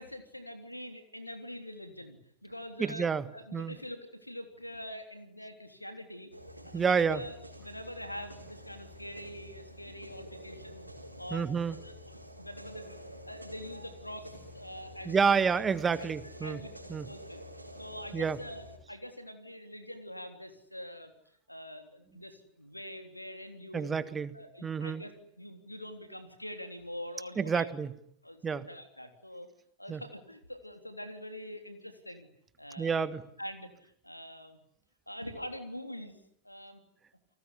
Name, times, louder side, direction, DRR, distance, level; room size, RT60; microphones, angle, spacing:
voice 1, 0.0-3.1 3.3-6.3 6.6-10.9 11.2-15.6 16.0-16.1 16.4-16.7 17.0-17.5 17.8-21.1 21.5-23.9 24.3-27.7 28.2-29.5 29.8-32.3 32.6-33.1 33.4-34.6 35.1-36.2 36.4-36.8, equal, 90° left, 7 dB, 3.4 m, -44 dB
voice 2, 2.8-3.2 3.5-3.7 6.7-7.2 11.3-11.8 15.0-16.6 16.9-17.1 18.1-18.4 23.7-24.4 24.6-25.0 27.4-27.9 28.4-28.7 29.9-30.0 32.8-33.2, right 6 dB, 20° right, 15 dB, 1.5 m, -29 dB
sound 1, 6.3-18.8, equal, 85° right, 4.4 m, -48 dB
29.5 x 19.0 x 10.0 m, 0.73 s
figure-of-eight pair, 90°, 0 cm